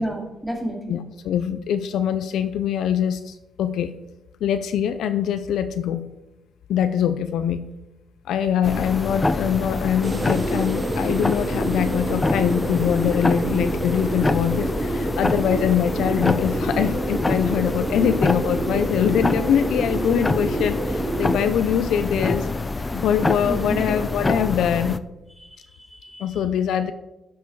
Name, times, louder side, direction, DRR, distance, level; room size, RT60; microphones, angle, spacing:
voice 1, 0.0-1.0 23.5-24.0 25.4-26.2, right 1 dB, ahead, -1 dB, 2.4 m, -31 dB
voice 2, 0.9-3.9 4.4-6.0 6.7-7.6 8.3-22.5 22.9-25.0 26.2-26.9, left 9 dB, 75° left, 10 dB, 0.5 m, -23 dB
sound 1, 8.6-25.0, left 2 dB, 20° left, 0.4 m, -26 dB
sound 2, 10.0-21.5, right 2 dB, 30° right, 0.9 m, -28 dB
12.5 x 4.7 x 4.7 m, 0.98 s
cardioid pair, 90°, 0 cm